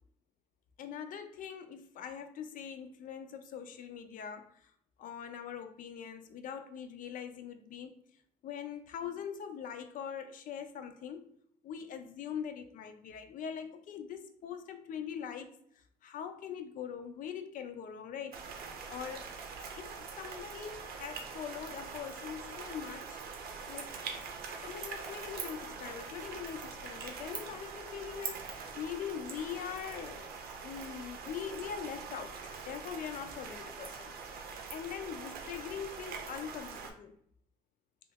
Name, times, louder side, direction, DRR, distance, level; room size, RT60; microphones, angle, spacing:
voice 1, 0.8-4.5 5.0-7.9 8.4-11.3 11.6-15.5 16.0-18.4 18.9-19.2 19.6-23.9 24.6-32.4 32.7-37.2, left 8 dB, 55° left, 0.4 m, -42 dB
sound 1, 18.3-36.9, right 5 dB, 65° right, 0.6 m, -43 dB
2.7 x 2.4 x 3.4 m
cardioid pair, 110°, 17 cm